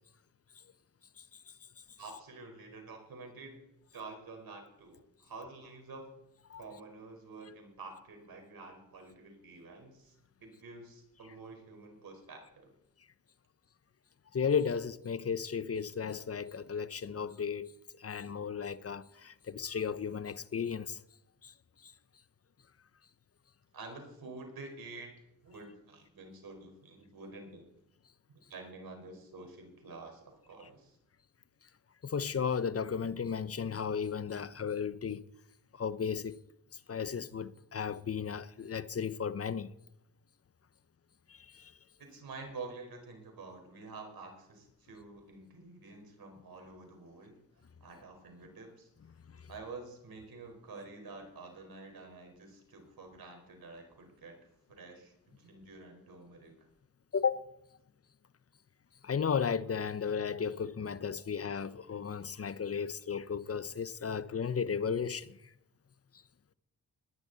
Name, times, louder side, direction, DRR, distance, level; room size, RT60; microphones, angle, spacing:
voice 1, 2.0-3.5 3.9-6.1 6.6-10.1 10.4-12.7 23.7-27.8 28.3-31.0 42.0-47.4 47.8-48.9 49.5-54.4 54.7-56.5, right 3 dB, 65° right, 4.6 m, -49 dB
voice 2, 14.3-17.7 18.0-21.0 21.4-21.5 21.8-21.9 32.0-35.2 35.7-36.4 36.9-39.7 41.3-41.7 49.3-49.4 57.1-57.4 59.0-65.4, left 6 dB, 35° left, 0.8 m, -34 dB
19.0 x 10.5 x 4.1 m
supercardioid pair, 50°, 39 cm